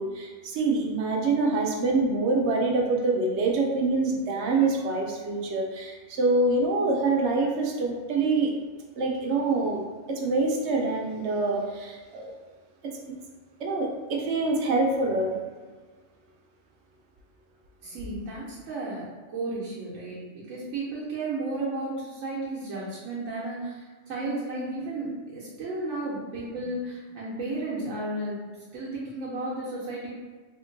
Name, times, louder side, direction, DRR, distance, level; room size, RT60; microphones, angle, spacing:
voice 1, 0.0-8.5 9.0-12.3 13.6-15.3, right 3 dB, 65° right, 0 dB, 0.8 m, -25 dB
voice 2, 17.8-30.1, right 2 dB, 90° right, -7 dB, 1.1 m, -33 dB
3.6 x 2.5 x 2.5 m, 1.4 s
omnidirectional pair, 1.3 m